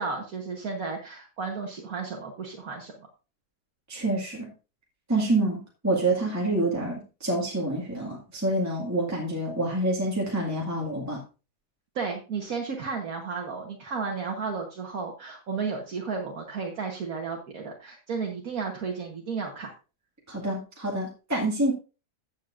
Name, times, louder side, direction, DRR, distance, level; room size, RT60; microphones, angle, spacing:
voice 1, 0.0-2.9 12.0-19.7, right 5 dB, 60° right, 0 dB, 1.7 m, -33 dB
voice 2, 3.9-4.5 5.1-5.6 5.8-11.2 20.3-21.7, right 2 dB, 10° right, -3 dB, 1.9 m, -27 dB
14.5 x 7.4 x 2.6 m, 0.33 s
omnidirectional pair, 1.7 m